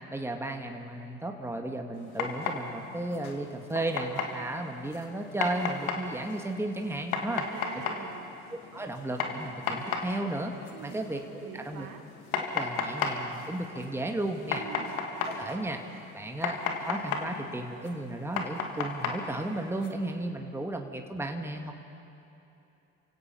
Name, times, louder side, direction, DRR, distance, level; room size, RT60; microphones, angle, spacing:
voice 1, 0.1-7.4 8.5-10.5 10.8-11.9 12.5-14.6 15.3-15.8 16.1-21.7, right 2 dB, 5° right, 3 dB, 1.9 m, -34 dB
sound 1, 2.0-19.9, left 5 dB, 85° left, 1.9 m, -36 dB
voice 2, 7.2-8.3 10.7-11.1 11.4-12.0 14.6-15.0, right 7 dB, 55° right, 5 dB, 2.3 m, -44 dB
30.0 x 16.5 x 5.6 m, 2.9 s
hypercardioid pair, 65°, 41 cm